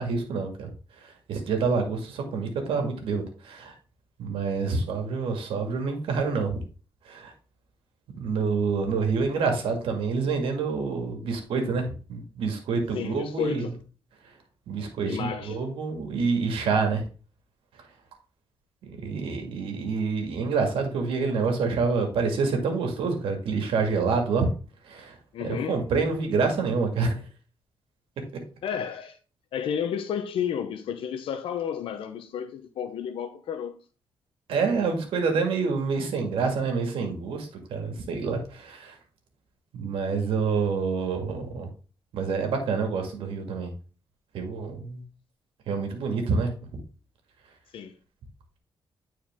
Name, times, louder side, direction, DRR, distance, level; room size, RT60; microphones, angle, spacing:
voice 1, 0.0-3.7 4.2-6.6 7.0-7.3 8.2-13.7 14.2-14.4 14.7-17.1 17.7-17.9 18.8-24.5 24.8-25.2 25.4-27.2 34.5-39.0 39.7-41.7 42.1-43.7 44.3-45.0 45.7-46.5, right 4 dB, 85° right, 2.0 m, -27 dB
voice 2, 12.9-13.7 15.0-15.6 25.3-25.8 28.6-29.2 29.5-33.7 47.7-47.9, left 8 dB, 80° left, 0.8 m, -31 dB
9.6 x 4.5 x 3.6 m
cardioid pair, 105°, 9 cm